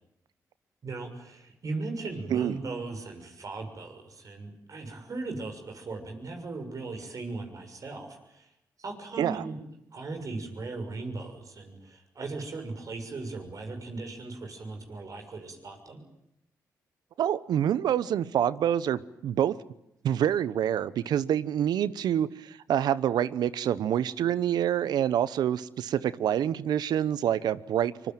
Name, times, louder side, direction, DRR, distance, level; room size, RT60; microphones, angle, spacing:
voice 1, 0.8-8.5 8.8-9.6 9.9-16.0, right 3 dB, 55° right, 6.6 m, -38 dB
voice 2, 17.2-19.5 20.0-28.1, right 10 dB, 80° right, 0.9 m, -27 dB
24.5 x 22.0 x 9.2 m
supercardioid pair, 55°, 7 cm